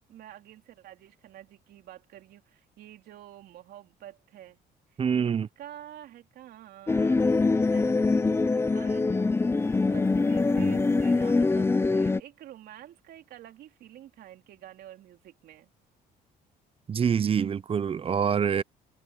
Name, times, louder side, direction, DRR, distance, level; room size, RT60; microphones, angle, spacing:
voice 1, 0.0-4.6 4.9-9.4 9.8-15.7, right 12 dB, 70° right, 4.0 m, -49 dB
voice 2, 5.0-5.5 10.6-10.7 16.9-18.6, right 7 dB, 35° right, 0.8 m, -26 dB
sound 1, 6.9-12.2, left 3 dB, 15° left, 0.6 m, -24 dB
cardioid pair, 110°, 17 cm